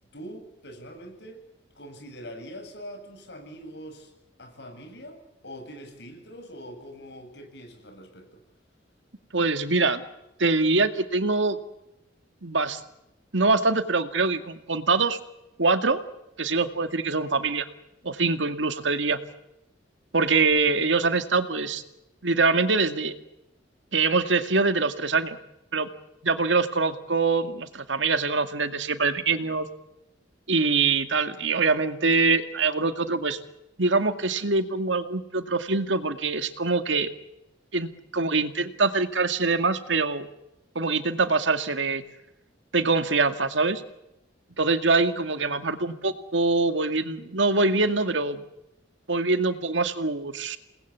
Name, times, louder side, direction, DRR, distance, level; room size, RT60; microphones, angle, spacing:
voice 1, 0.1-1.4 1.7-4.1 4.4-8.4, equal, 65° left, 5 dB, 8.0 m, -43 dB
voice 2, 9.3-10.0 10.4-11.6 12.4-12.8 13.3-15.2 15.6-16.0 16.4-17.7 18.0-19.2 20.1-21.8 22.2-23.2 23.9-25.4 25.7-25.9 26.2-29.7 30.5-33.4 33.8-37.1 37.7-40.3 40.8-42.0 42.7-43.8 44.6-48.4 49.1-50.6, right 3 dB, 85° right, 9 dB, 2.2 m, -24 dB
29.5 x 20.5 x 8.3 m, 0.89 s
head